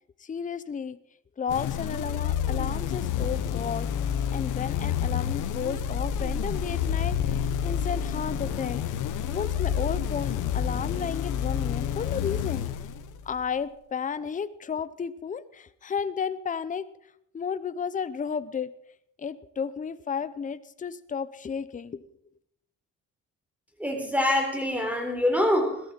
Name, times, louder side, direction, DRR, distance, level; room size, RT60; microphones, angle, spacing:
voice 1, 0.2-1.0 1.4-3.9 4.3-8.8 9.3-12.7 13.3-16.9 17.3-18.7 19.2-22.1, left 6 dB, 25° left, 15 dB, 0.7 m, -33 dB
sound 1, 1.5-13.4, left 8 dB, 90° left, 1.1 m, -29 dB
voice 2, 23.8-25.8, left 1 dB, 5° right, 4 dB, 3.9 m, -25 dB
17.5 x 13.0 x 4.5 m, 0.74 s
cardioid pair, 90°, 30 cm